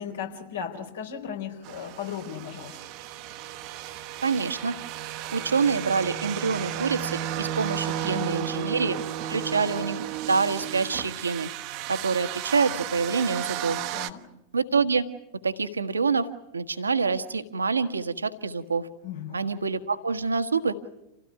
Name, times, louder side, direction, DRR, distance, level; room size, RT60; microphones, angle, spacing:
voice 1, 0.0-2.8 8.0-8.5 13.9-14.3 19.0-19.5, left 8 dB, 65° left, 4 dB, 4.0 m, -36 dB
sound 1, 1.6-14.1, right 11 dB, 45° right, 1.1 m, -34 dB
voice 2, 4.2-4.7 5.3-9.0 9.3-11.5 11.9-13.8 14.5-15.0 15.4-16.3 16.5-18.9 19.3-20.7, right 4 dB, 75° right, 11 dB, 1.5 m, -26 dB
28.5 x 16.5 x 9.8 m, 0.88 s
figure-of-eight pair, 90°, 0 cm